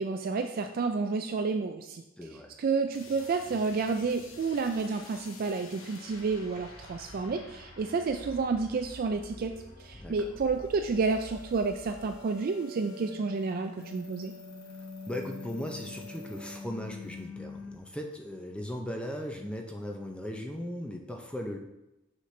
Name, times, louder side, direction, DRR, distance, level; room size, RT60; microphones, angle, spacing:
voice 1, 0.0-2.0 2.6-9.5 9.8-14.3, right 4 dB, 45° right, 6 dB, 0.3 m, -30 dB
voice 2, 2.2-2.5 9.9-10.2 15.1-21.6, left 1 dB, 5° left, 2 dB, 0.5 m, -38 dB
sound 1, 2.9-12.5 12.7-17.8, left 3 dB, 75° left, 1.0 m, -47 dB
sound 2, 10.4-16.6, left 1 dB, 55° left, 2.3 m, -51 dB
6.4 x 5.8 x 3.2 m, 0.92 s
head